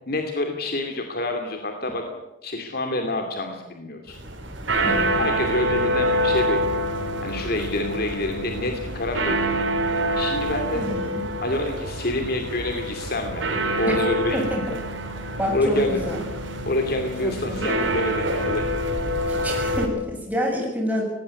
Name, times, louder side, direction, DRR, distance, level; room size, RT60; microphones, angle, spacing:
voice 1, 0.1-2.0 2.4-4.2 4.8-6.6 7.2-9.7 10.2-10.9 11.4-13.4 13.8-14.4 15.5-16.0 16.7-18.6, left 2 dB, 55° left, 4 dB, 2.5 m, -27 dB
sound 1, 4.1-19.9, right 1 dB, 85° right, 5.0 m, -26 dB
voice 2, 4.8-5.3 10.7-11.2 13.9-14.0 14.3-14.6 15.4-16.2 17.2-17.7 19.3-21.0, equal, 10° right, -1 dB, 7.3 m, -28 dB
19.0 x 16.0 x 9.7 m, 1.0 s
head